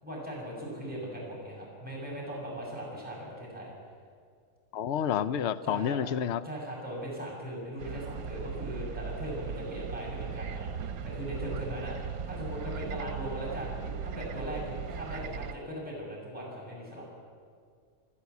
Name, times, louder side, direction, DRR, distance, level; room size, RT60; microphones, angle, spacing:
voice 1, 0.0-3.7 5.6-6.0 6.4-17.0, equal, 5° right, -5 dB, 6.9 m, -39 dB
voice 2, 4.7-6.4, left 8 dB, 60° left, 14 dB, 0.9 m, -29 dB
sound 1, 7.8-15.6, right 7 dB, 85° right, 1.3 m, -38 dB
29.0 x 13.0 x 8.3 m, 2.1 s
omnidirectional pair, 1.5 m